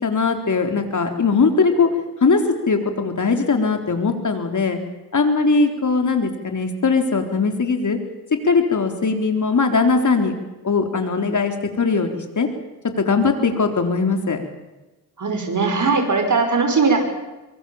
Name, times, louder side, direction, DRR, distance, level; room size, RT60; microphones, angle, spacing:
voice 1, 0.0-1.9 2.2-4.8 5.1-8.0 8.4-10.3 10.6-12.5 13.0-14.4, left 4 dB, 55° left, 5 dB, 4.1 m, -20 dB
voice 2, 15.2-17.0, right 4 dB, 55° right, 5 dB, 5.6 m, -19 dB
24.0 x 24.0 x 7.3 m, 1.1 s
cardioid pair, 70°, 36 cm